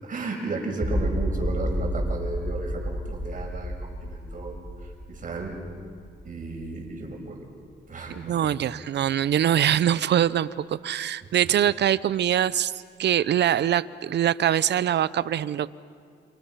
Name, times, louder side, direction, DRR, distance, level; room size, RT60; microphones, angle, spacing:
voice 1, 0.0-5.5 6.2-7.5 7.9-8.6 11.2-11.3, right 3 dB, 40° right, 1 dB, 6.3 m, -34 dB
sound 1, 0.8-6.9, equal, 20° right, 7.0 m, -31 dB
voice 2, 8.1-15.7, right 10 dB, 60° right, 18 dB, 0.8 m, -23 dB
29.5 x 28.0 x 5.8 m, 2.2 s
cardioid pair, 90°, 20 cm